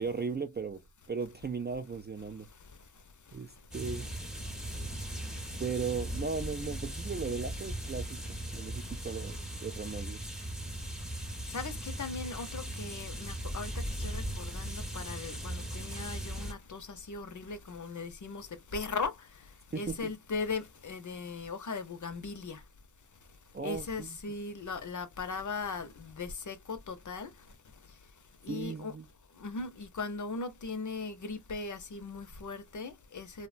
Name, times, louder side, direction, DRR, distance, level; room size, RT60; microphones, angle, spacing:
voice 1, 0.0-2.5 3.3-4.1 5.6-10.3 19.7-20.0 23.5-24.2 28.5-29.1, right 5 dB, 25° right, 0.3 m, -37 dB
voice 2, 2.4-3.7 4.6-5.6 8.8-8.9 10.6-22.7 23.0-28.9 29.3-33.5, left 4 dB, 50° left, 0.7 m, -40 dB
sound 1, 3.7-16.5, right 1 dB, ahead, 0.7 m, -38 dB
2.9 x 2.1 x 2.4 m
cardioid pair, 55°, 40 cm